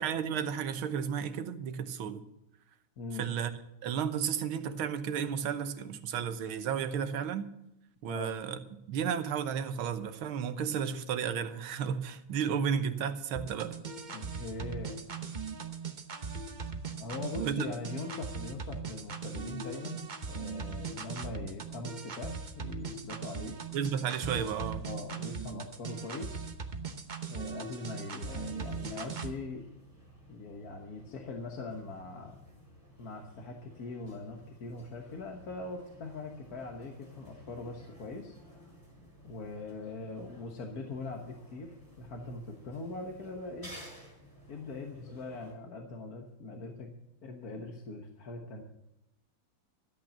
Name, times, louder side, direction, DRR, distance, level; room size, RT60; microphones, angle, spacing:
voice 1, 0.0-2.2 3.1-3.5 3.8-7.5 8.0-8.6 8.9-13.8 17.4-17.7 23.7-24.9, right 7 dB, 85° right, 10 dB, 1.8 m, -33 dB
voice 2, 3.0-3.3 8.1-8.3 14.1-15.0 17.0-23.6 24.8-26.4 27.3-29.7 30.3-32.4 33.0-38.4 39.2-43.8 44.5-46.9 47.2-48.6, left 3 dB, 50° left, 2 dB, 1.6 m, -41 dB
sound 1, 13.3-29.3, right 5 dB, 50° right, 0.5 m, -39 dB
sound 2, 28.2-45.5, equal, 10° left, 6.2 m, -55 dB
13.5 x 8.7 x 7.5 m, 0.86 s
omnidirectional pair, 2.2 m